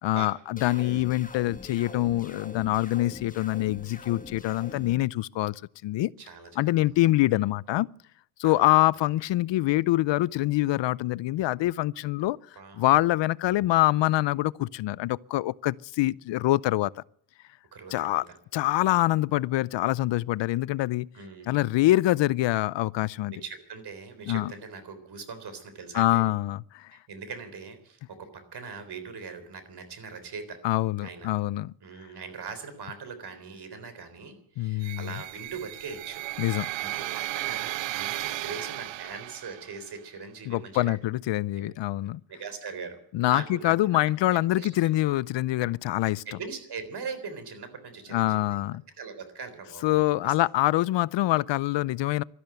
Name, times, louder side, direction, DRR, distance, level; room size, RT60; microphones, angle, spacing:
voice 1, 0.0-6.1 6.6-7.9 8.4-12.4 12.8-16.9 17.9-18.3 18.5-21.1 21.5-23.3 24.3-24.5 25.9-26.9 30.6-31.7 34.6-35.1 36.4-36.7 40.5-42.2 43.1-46.2 48.1-48.8 49.8-52.2, left 16 dB, 70° left, 0.5 m, -25 dB
sound 1, 0.6-4.9, left 4 dB, 20° left, 1.3 m, -44 dB
voice 2, 0.7-1.1 6.2-7.0 7.2-7.4 8.4-8.7 12.6-12.8 17.7-18.4 21.1-21.6 23.3-26.3 26.9-30.6 31.0-31.3 31.8-36.2 36.5-41.0 41.6-41.7 42.3-44.0 44.5-44.7 46.3-48.6 49.0-50.4, right 5 dB, 60° right, 3.7 m, -41 dB
sound 2, 34.8-39.9, right 17 dB, 80° right, 0.5 m, -35 dB
12.5 x 12.5 x 9.1 m
cardioid pair, 95°, 45 cm